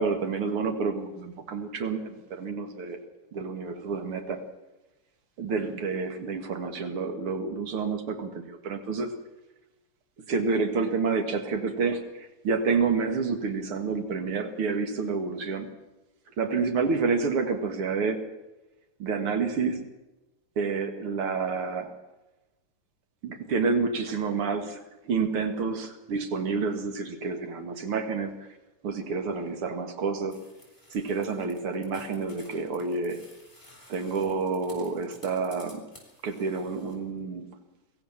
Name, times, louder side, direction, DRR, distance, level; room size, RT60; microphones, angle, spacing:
voice 1, 0.0-3.0 3.3-4.4 5.4-9.1 10.3-15.7 16.4-18.2 19.0-19.8 20.6-21.9 23.2-24.8 25.1-28.4 28.8-30.4 30.9-33.2 33.9-35.9 36.2-37.6, right 4 dB, 85° right, 6 dB, 2.7 m, -29 dB
sound 1, 30.3-37.0, left 1 dB, 10° left, 7.1 m, -54 dB
24.0 x 15.0 x 7.3 m, 1.0 s
omnidirectional pair, 2.3 m